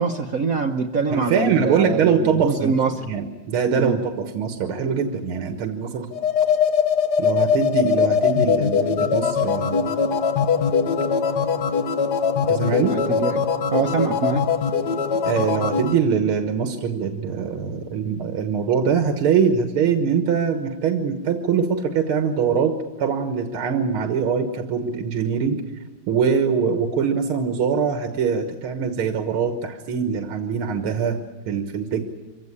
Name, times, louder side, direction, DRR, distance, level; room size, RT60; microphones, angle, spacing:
voice 1, 0.0-3.1 3.7-4.0 12.9-13.4 13.7-14.5, right 5 dB, 50° right, 4 dB, 1.2 m, -24 dB
voice 2, 1.1-2.8 3.1-6.1 7.2-9.9 12.5-13.0 15.2-25.6 26.1-31.2 31.5-32.1, right 6 dB, 80° right, 5 dB, 2.2 m, -23 dB
sound 1, 6.1-15.9, left 6 dB, 55° left, 1.6 m, -21 dB
24.5 x 16.5 x 9.8 m, 1.2 s
omnidirectional pair, 2.3 m